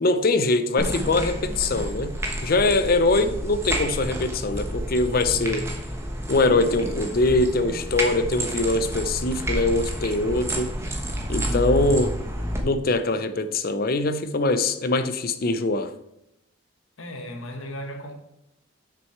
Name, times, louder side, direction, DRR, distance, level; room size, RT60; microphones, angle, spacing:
voice 1, 0.0-2.2 2.4-5.7 6.3-10.7 11.3-12.1 12.6-15.9, left 2 dB, 45° left, 0.6 m, -23 dB
sound 1, 0.8-12.6, equal, 15° right, 1.0 m, -30 dB
voice 2, 11.3-12.0 17.0-18.2, left 1 dB, 70° left, 1.2 m, -36 dB
6.4 x 6.2 x 4.4 m
head